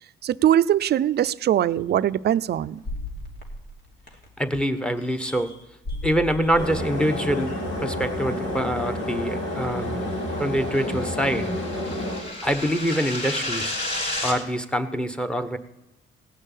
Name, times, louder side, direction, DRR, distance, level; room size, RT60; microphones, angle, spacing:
voice 1, 0.2-2.8, right 11 dB, 55° right, 0.5 m, -21 dB
sound 1, 0.9-1.0 1.7-1.8 2.8-4.5 5.0-8.1 8.9-9.0, left 1 dB, 60° left, 3.1 m, -37 dB
voice 2, 4.4-5.5 6.0-10.0 10.4-11.5 12.4-13.8 14.2-15.6, equal, 5° left, 1.3 m, -25 dB
sound 2, 6.6-12.2, left 1 dB, 90° left, 3.4 m, -29 dB
sound 3, 9.9-14.4, left 1 dB, 35° left, 4.2 m, -32 dB
17.5 x 6.4 x 9.1 m
cardioid pair, 90°, 20 cm